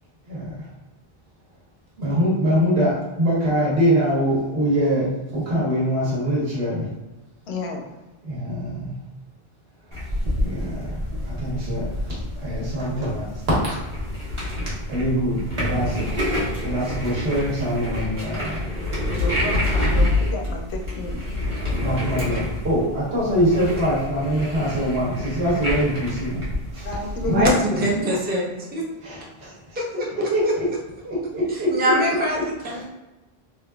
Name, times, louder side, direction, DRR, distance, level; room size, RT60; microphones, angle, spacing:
voice 1, 2.0-5.1 5.3-6.9 8.2-8.9 10.4-11.0 11.3-11.8 12.3-13.3 13.6-13.7 14.9-16.1 16.6-18.6 21.8-26.4 26.7-26.9 29.0-29.5 30.3-30.7 31.0-31.7 32.4-32.5 32.7-32.8, equal, 80° right, -7 dB, 1.4 m, -23 dB
voice 2, 7.5-7.9 19.2-21.2 26.8-28.4, left 1 dB, 85° left, 1 dB, 0.9 m, -31 dB
sound 1, 9.9-27.5, left 1 dB, 30° right, 1.0 m, -27 dB
voice 3, 27.3-28.8 29.7-30.1 31.7-32.8, equal, 15° right, -3 dB, 0.4 m, -23 dB
3.6 x 2.5 x 2.3 m, 1.1 s
omnidirectional pair, 1.0 m